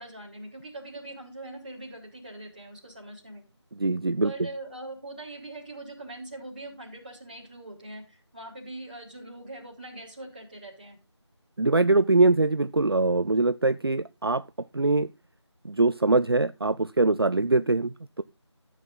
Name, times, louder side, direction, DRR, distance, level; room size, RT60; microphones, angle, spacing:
voice 1, 0.0-3.4 4.2-11.0, right 2 dB, 20° right, -5 dB, 3.5 m, -42 dB
voice 2, 3.8-4.3 11.6-14.4 14.7-15.1 15.6-18.2, right 3 dB, 55° right, 13 dB, 0.5 m, -23 dB
14.0 x 7.6 x 4.0 m, 0.27 s
figure-of-eight pair, 175°, 15 cm